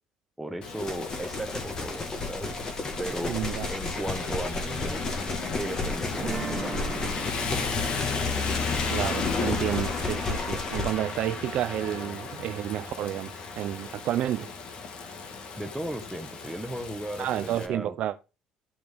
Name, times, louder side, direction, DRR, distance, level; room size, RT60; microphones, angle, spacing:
voice 1, 0.4-2.6 3.0-3.4 3.7-5.0 5.6-7.0 15.6-18.0, right 1 dB, 5° right, 1.1 m, -36 dB
Rain, 0.6-17.7, left 5 dB, 45° left, 1.4 m, -34 dB
sound 1, 0.8-10.9, left 3 dB, 25° left, 1.6 m, -33 dB
voice 2, 3.3-3.7 8.9-14.5 17.2-18.2, right 12 dB, 55° right, 0.4 m, -30 dB
sound 2, 6.2-11.1, right 6 dB, 25° right, 0.7 m, -41 dB
14.0 x 6.0 x 3.4 m
cardioid pair, 150°, 2 cm